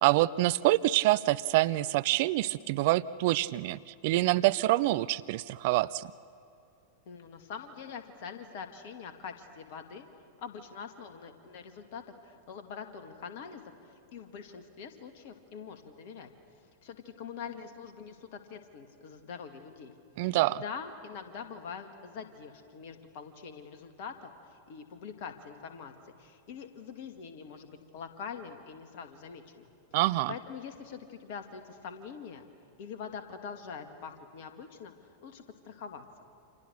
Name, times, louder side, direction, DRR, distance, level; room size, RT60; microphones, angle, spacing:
voice 1, 0.0-6.1 20.2-20.6 29.9-30.3, right 17 dB, 50° right, 17 dB, 0.5 m, -26 dB
voice 2, 7.1-10.1 10.4-16.3 16.8-19.9 20.2-29.7 30.3-32.4 32.8-34.9 35.2-36.0, left 6 dB, 50° left, 7 dB, 2.4 m, -44 dB
29.5 x 27.0 x 6.6 m, 2.6 s
figure-of-eight pair, 90°, 0 cm